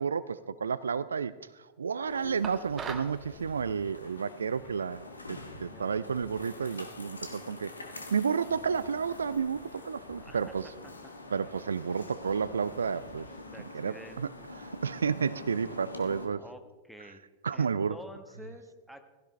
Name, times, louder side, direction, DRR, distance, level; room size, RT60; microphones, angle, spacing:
voice 1, 0.0-1.3 1.8-7.7 8.1-10.7 11.3-13.3 13.7-14.3 14.7-16.4 17.4-18.0, right 6 dB, 70° right, 0.3 m, -31 dB
sound 1, 2.1-16.3, left 2 dB, 80° left, 1.5 m, -46 dB
sound 2, 2.4-3.2, right 6 dB, 25° right, 1.2 m, -39 dB
sound 3, 2.6-13.4, left 2 dB, 60° left, 4.0 m, -56 dB
voice 2, 5.7-6.2 10.2-10.5 10.8-10.9 13.5-14.5 16.4-17.2 17.5-19.0, equal, ahead, 1.4 m, -49 dB
16.0 x 16.0 x 3.3 m
figure-of-eight pair, 90°, 0 cm